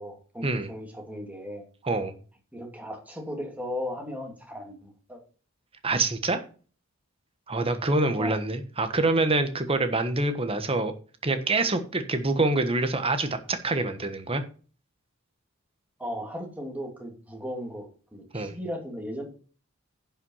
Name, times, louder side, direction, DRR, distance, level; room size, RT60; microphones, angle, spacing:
voice 1, 0.0-1.6 2.5-5.2 8.1-8.4 16.0-19.2, equal, 10° right, 2 dB, 2.7 m, -36 dB
voice 2, 5.8-6.4 7.5-10.9 11.2-14.4 18.3-18.6, right 2 dB, 30° right, 9 dB, 1.3 m, -26 dB
10.5 x 5.8 x 5.6 m, 0.38 s
head